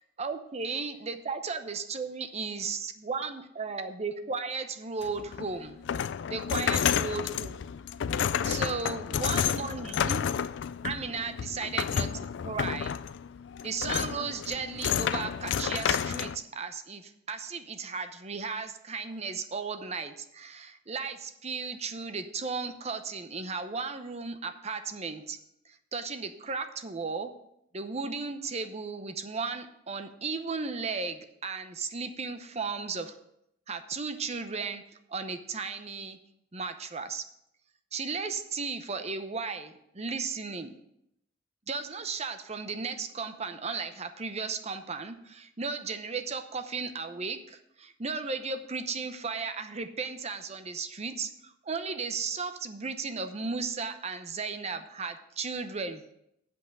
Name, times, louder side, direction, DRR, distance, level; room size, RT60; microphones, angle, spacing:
voice 1, 0.2-5.8 6.3-7.5 8.4-10.3 10.8-13.0 13.6-25.4 25.7-27.3 27.7-33.1 33.7-34.8 35.1-36.2 36.5-37.2 37.9-40.7 41.7-56.0, right 4 dB, 35° right, 8 dB, 0.8 m, -35 dB
sound 1, 5.0-16.4, left 8 dB, 65° left, 0.3 m, -30 dB
7.9 x 5.5 x 7.4 m, 0.77 s
head